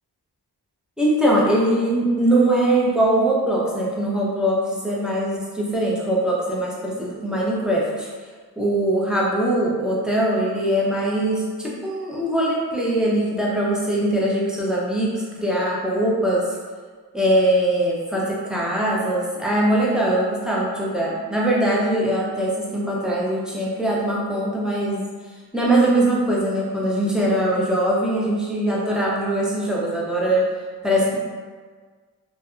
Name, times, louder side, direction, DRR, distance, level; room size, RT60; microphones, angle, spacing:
voice 1, 1.0-8.1 8.6-16.4 17.1-25.0 25.5-30.5 30.8-31.2, right 1 dB, ahead, -5 dB, 0.6 m, -21 dB
2.7 x 2.2 x 2.4 m, 1.5 s
cardioid pair, 50°, 39 cm